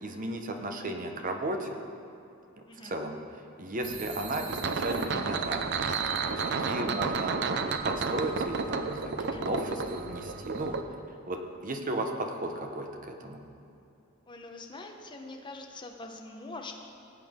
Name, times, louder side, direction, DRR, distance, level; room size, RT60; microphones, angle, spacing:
voice 1, 0.0-1.8 2.6-3.2 3.6-6.0 6.3-10.7 11.3-13.4, right 1 dB, 40° right, 4 dB, 1.0 m, -35 dB
voice 2, 2.7-3.0 9.3-9.5 14.3-16.7, left 2 dB, 20° left, 2 dB, 1.0 m, -44 dB
sound 1, 3.8-10.8, right 4 dB, 55° right, 0.6 m, -32 dB
18.0 x 8.3 x 3.7 m, 2.7 s
head